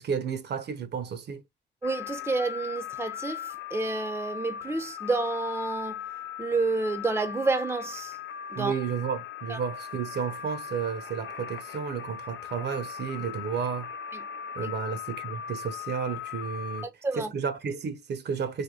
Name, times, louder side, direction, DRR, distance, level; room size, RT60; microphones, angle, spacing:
voice 1, 0.0-1.4 8.5-13.9 14.6-16.9 17.2-18.6, right 6 dB, 60° right, 0.7 m, -32 dB
sound 1, 1.8-16.9, left 8 dB, 70° left, 0.6 m, -39 dB
voice 2, 1.8-6.0 6.4-8.2 8.5-8.7 9.5-9.6 14.1-14.2 14.6-14.7 16.8-17.3, right 3 dB, 10° right, 0.6 m, -29 dB
3.4 x 2.1 x 3.6 m
cardioid pair, 90°, 20 cm